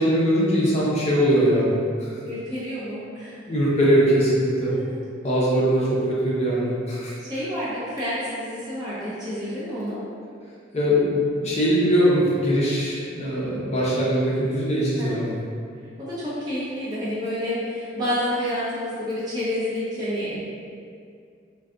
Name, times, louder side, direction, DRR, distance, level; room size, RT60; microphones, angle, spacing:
voice 1, 0.0-2.1 3.5-4.7 5.2-7.1 10.7-15.3, equal, 35° left, -7 dB, 0.7 m, -21 dB
voice 2, 2.2-3.4 4.7-4.8 7.2-10.0 15.0-15.5 16.0-20.5, left 1 dB, 20° right, -11 dB, 0.8 m, -29 dB
2.4 x 2.2 x 3.7 m, 2.3 s
head